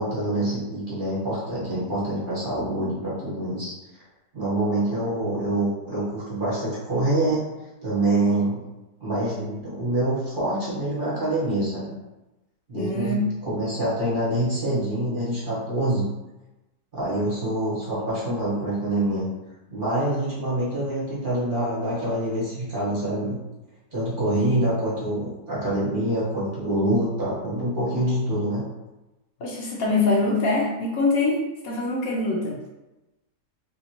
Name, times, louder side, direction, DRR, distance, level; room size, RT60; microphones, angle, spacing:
voice 1, 0.0-3.7 4.3-7.4 7.8-8.6 9.0-11.9 12.7-13.1 13.5-16.1 16.9-19.3 19.7-23.4 23.9-28.6, right 1 dB, 35° right, -9 dB, 1.1 m, -25 dB
voice 2, 12.7-13.2 29.4-32.6, left 2 dB, 70° left, -2 dB, 1.0 m, -24 dB
2.8 x 2.7 x 2.8 m, 1.0 s
omnidirectional pair, 1.6 m